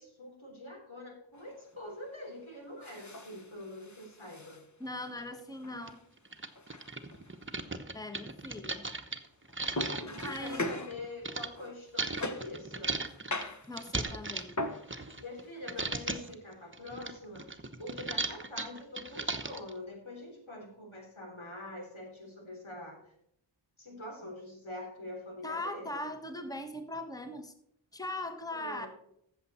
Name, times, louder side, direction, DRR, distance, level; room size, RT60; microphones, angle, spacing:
voice 1, 0.0-4.6 10.0-13.0 15.2-23.0 23.8-26.0 28.5-28.9, left 2 dB, 90° left, 0 dB, 3.6 m, -45 dB
sound 1, 1.3-1.8 2.8-5.1 5.5-6.0 6.5-7.7 9.5-12.6 13.1-14.9 15.4-16.4, left 2 dB, 35° left, 1.1 m, -41 dB
voice 2, 4.8-6.0 7.9-8.9 10.2-10.6 13.7-14.5 25.4-27.5 27.9-28.9, left 1 dB, 10° left, 6 dB, 1.3 m, -40 dB
sound 2, 5.2-5.3 5.9-6.0 6.3-11.5 12.0-15.4 15.7-16.3 16.7-19.7, right 3 dB, 25° right, 1.0 m, -37 dB
14.5 x 6.9 x 4.2 m, 0.75 s
wide cardioid pair, 40°, 47 cm